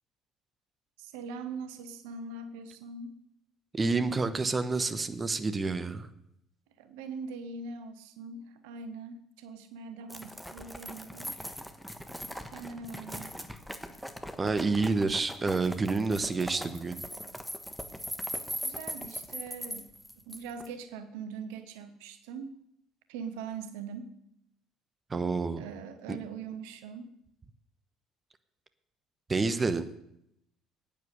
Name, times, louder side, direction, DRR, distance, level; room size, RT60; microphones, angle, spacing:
voice 1, 1.0-3.2 6.8-11.3 12.5-13.3 18.6-19.9 20.2-22.5 23.1-24.1 25.6-27.1, right 5 dB, 65° right, 10 dB, 0.9 m, -42 dB
voice 2, 3.7-6.1 14.4-17.0 25.1-25.6 26.1-26.2 29.3-29.9, right 3 dB, 25° right, 11 dB, 1.0 m, -29 dB
sound 1, 10.1-20.7, equal, ahead, 1.4 m, -40 dB
10.5 x 9.6 x 6.8 m, 0.78 s
figure-of-eight pair, 55°, 0 cm